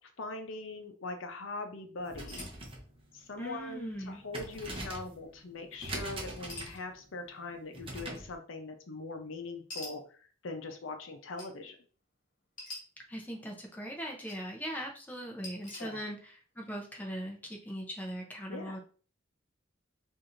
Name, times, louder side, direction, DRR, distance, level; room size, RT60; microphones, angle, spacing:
voice 1, 0.2-2.5 3.1-10.0 10.4-11.8 15.8-16.0 18.5-18.8, left 3 dB, 75° left, 5 dB, 0.6 m, -41 dB
sound 1, 2.0-8.4, right 1 dB, 25° right, 0.7 m, -43 dB
sound 2, 2.3-2.6 3.6-3.7 4.0-4.4 6.5-6.8 8.1-8.2 9.7-9.9 11.4-11.5 12.6-12.8 13.9-14.4 15.4-15.8, left 2 dB, 45° left, 1.5 m, -44 dB
voice 2, 3.4-4.2 13.1-18.8, equal, 10° left, 0 dB, 0.6 m, -40 dB
4.6 x 2.7 x 2.5 m, 0.40 s
head